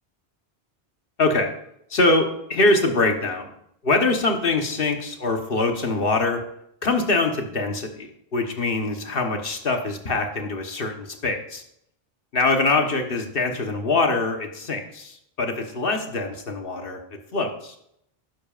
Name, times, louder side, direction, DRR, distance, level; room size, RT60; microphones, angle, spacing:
voice 1, 1.2-1.5 1.9-3.5 3.8-6.4 6.8-11.6 12.3-17.8, left 3 dB, 65° left, 4 dB, 1.4 m, -23 dB
12.0 x 10.5 x 2.5 m, 0.74 s
omnidirectional pair, 1.0 m